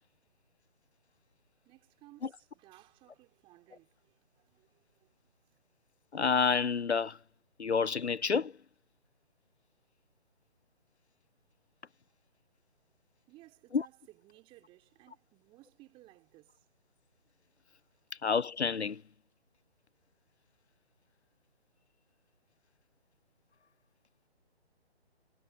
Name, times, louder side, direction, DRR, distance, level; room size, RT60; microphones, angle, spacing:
voice 1, 1.6-5.6 12.0-12.2 12.5-12.6 13.3-16.7 17.9-18.1, right 18 dB, 15° right, 4.5 m, -60 dB
voice 2, 6.1-7.2 7.6-8.5 13.7-13.8 18.2-19.0, left 5 dB, 80° left, 0.8 m, -29 dB
figure-of-eight pair, 145°, 33 cm